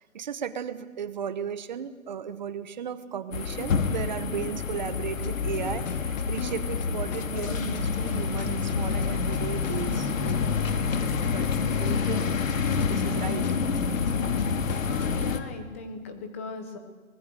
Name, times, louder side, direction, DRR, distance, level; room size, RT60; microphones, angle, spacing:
voice 1, 0.0-10.4 11.3-11.5 11.8-12.3 12.9-13.5, right 8 dB, 30° right, 12 dB, 1.0 m, -35 dB
sound 1, 3.3-15.4, left 5 dB, 65° left, 2.0 m, -28 dB
sound 2, 5.2-7.5 7.7-10.0 10.3-10.6 10.9-12.5 12.8-13.2 13.4-15.0, left 5 dB, 30° left, 1.3 m, -39 dB
voice 2, 14.8-16.8, left 4 dB, 10° left, 7 dB, 0.7 m, -38 dB
23.5 x 19.5 x 6.8 m, 1.4 s
hypercardioid pair, 170°, 42 cm